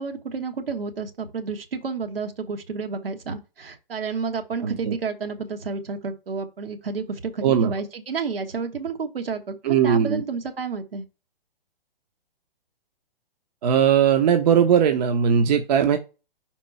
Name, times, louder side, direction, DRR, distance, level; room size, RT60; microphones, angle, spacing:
voice 1, 0.0-11.0, right 5 dB, 75° right, 1.5 m, -30 dB
voice 2, 4.6-4.9 7.4-7.7 9.7-10.2 13.6-16.0, right 8 dB, 45° right, 0.8 m, -19 dB
5.3 x 4.4 x 4.0 m
figure-of-eight pair, 130°, 29 cm